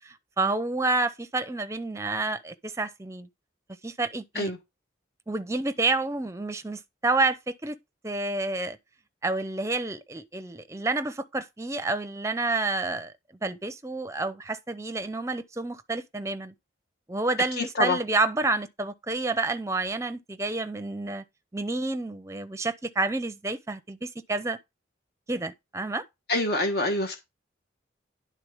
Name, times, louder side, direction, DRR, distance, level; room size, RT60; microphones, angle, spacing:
voice 1, 0.0-3.3 3.8-4.5 5.3-7.8 8.0-8.8 9.2-13.1 13.4-16.5 17.1-21.2 21.5-24.6 25.3-26.0, right 3 dB, 15° right, 0.6 m, -29 dB
voice 2, 17.6-18.0 26.3-27.2, left 2 dB, 55° left, 1.2 m, -26 dB
10.5 x 3.8 x 4.8 m
head